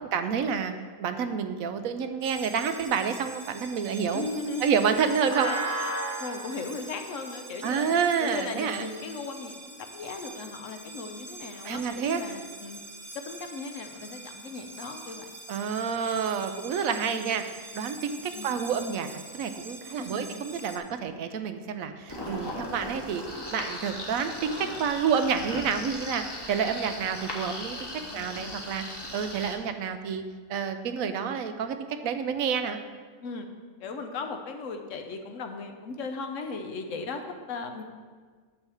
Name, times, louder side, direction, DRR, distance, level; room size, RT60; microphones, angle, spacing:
voice 1, 0.1-0.7 1.0-4.3 4.6-5.5 7.6-8.8 11.6-12.2 15.5-23.2 23.5-27.8 28.1-30.2 30.5-32.8, right 6 dB, 85° right, 8 dB, 1.1 m, -29 dB
sound 1, 2.2-20.8, right 2 dB, 20° right, 0.5 m, -41 dB
voice 2, 4.1-4.7 5.4-5.7 6.2-12.8 13.1-15.3 18.3-18.6 20.0-20.3 28.0-28.5 33.2-33.5 33.8-37.8, left 4 dB, 70° left, 5 dB, 1.1 m, -37 dB
sound 2, 22.1-29.6, left 1 dB, 20° left, 1.0 m, -38 dB
9.8 x 3.4 x 6.9 m, 1.6 s
omnidirectional pair, 1.4 m